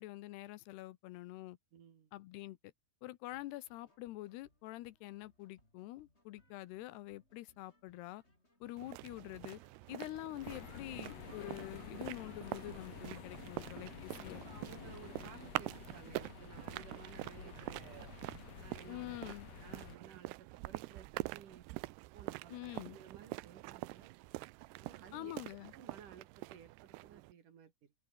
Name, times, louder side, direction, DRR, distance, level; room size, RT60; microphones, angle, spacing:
voice 1, 0.0-1.6 2.1-2.6 3.0-8.2 8.6-9.6 9.9-14.4 18.9-19.5 22.5-23.0 25.1-25.7, left 17 dB, 80° left, 2.9 m, -46 dB
voice 2, 1.7-2.1 13.5-13.7 14.4-18.0 18.6-21.6 22.1-24.1 24.8-25.4 25.7-27.9, right 7 dB, 55° right, 3.7 m, -57 dB
sound 1, 3.3-16.5, left 1 dB, 15° left, 7.2 m, -70 dB
sound 2, 8.8-27.3, right 21 dB, 85° right, 2.7 m, -46 dB
sound 3, 10.4-20.0, left 9 dB, 50° left, 2.2 m, -51 dB
open air
omnidirectional pair, 4.7 m